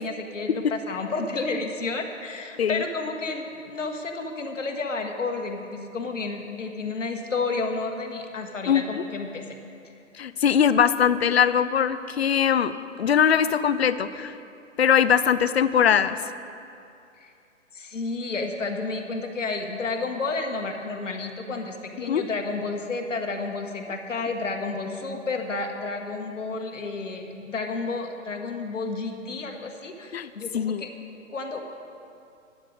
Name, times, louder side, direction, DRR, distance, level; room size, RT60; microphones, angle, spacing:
voice 1, 0.0-9.6 17.2-17.3 17.7-30.9 31.3-31.6, left 3 dB, 70° left, 3 dB, 1.3 m, -31 dB
voice 2, 10.2-12.7 13.0-14.3 14.8-16.2 22.1-22.2 30.1-30.9, left 8 dB, 55° left, 14 dB, 0.5 m, -21 dB
12.0 x 8.8 x 5.1 m, 2.6 s
figure-of-eight pair, 130°, 38 cm